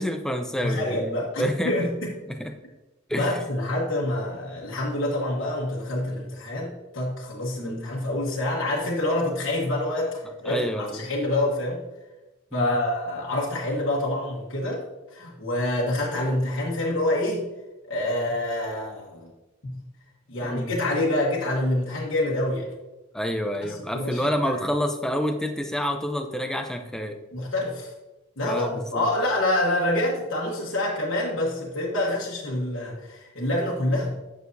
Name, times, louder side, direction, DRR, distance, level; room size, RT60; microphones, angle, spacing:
voice 1, 0.0-1.9 2.3-2.5 3.1-3.4 7.6-7.9 10.2-11.1 12.5-12.8 20.4-20.7 23.1-27.2 28.4-29.0, equal, 5° left, 5 dB, 0.5 m, -28 dB
voice 2, 0.6-2.1 3.1-11.8 12.5-14.8 15.1-17.4 17.9-19.3 19.6-19.7 20.3-22.7 23.7-24.3 27.3-27.9 28.4-34.1, left 1 dB, 65° left, -4 dB, 1.2 m, -27 dB
9.2 x 6.3 x 2.7 m, 1.1 s
head